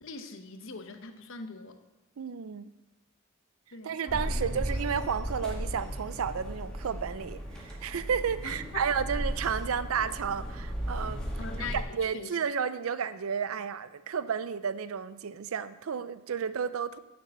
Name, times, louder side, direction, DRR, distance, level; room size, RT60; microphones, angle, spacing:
voice 1, 0.0-1.8 3.7-4.6 8.4-8.6 11.4-12.4, left 4 dB, 70° left, 7 dB, 0.9 m, -42 dB
voice 2, 2.2-2.7 3.8-11.2 11.6-17.0, right 7 dB, 85° right, 15 dB, 0.5 m, -32 dB
sound 1, 4.1-11.8, equal, 5° left, 1.9 m, -35 dB
6.9 x 6.7 x 7.4 m, 1.0 s
head